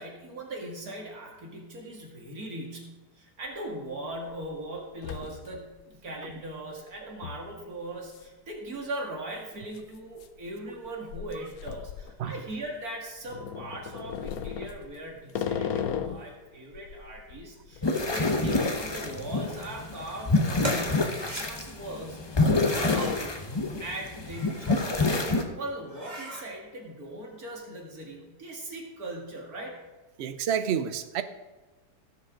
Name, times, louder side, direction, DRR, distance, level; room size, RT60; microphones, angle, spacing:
voice 1, 0.0-23.4 23.8-29.8, right 1 dB, 60° right, -1 dB, 2.6 m, -39 dB
sound 1, 3.5-3.6 4.1-4.5 4.8-5.8 6.1-6.2 7.2-7.5 8.1-8.3 8.5-8.6 9.6-12.7 13.2-16.3 16.7-19.1 19.3-19.5 20.1-21.1 21.9-22.5 22.9-23.2, left 8 dB, 65° left, 1.1 m, -36 dB
sound 2, 17.8-25.4, left 2 dB, 25° left, 0.5 m, -27 dB
sound 3, 20.6-21.5 22.6-23.2 24.1-24.9 25.3-25.4 25.8-26.5, right 1 dB, 25° right, 1.8 m, -39 dB
voice 2, 30.2-31.2, right 8 dB, 85° right, 10 dB, 0.5 m, -29 dB
17.0 x 7.6 x 3.7 m, 1.2 s
omnidirectional pair, 1.8 m